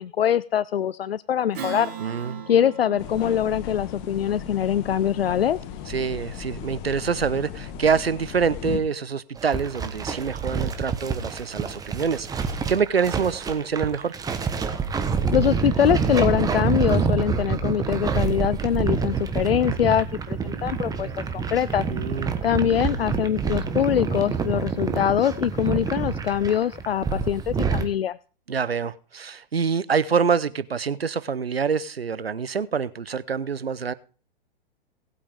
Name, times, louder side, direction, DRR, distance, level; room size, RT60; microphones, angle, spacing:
voice 1, 0.0-1.9 2.5-5.6 15.3-21.8 22.4-28.2, left 9 dB, 85° left, 19 dB, 0.5 m, -23 dB
Strum, 1.5-6.4, right 8 dB, 60° right, 3.7 m, -40 dB
voice 2, 2.0-2.4 5.9-14.1 21.9-22.4 28.5-33.9, right 6 dB, 90° right, 17 dB, 0.8 m, -26 dB
sound 1, 3.0-8.8, left 9 dB, 35° left, 1.5 m, -36 dB
sound 2, 9.4-27.9, right 5 dB, 10° right, 1.2 m, -27 dB
18.5 x 8.4 x 3.6 m, 0.38 s
figure-of-eight pair, 115°, 29 cm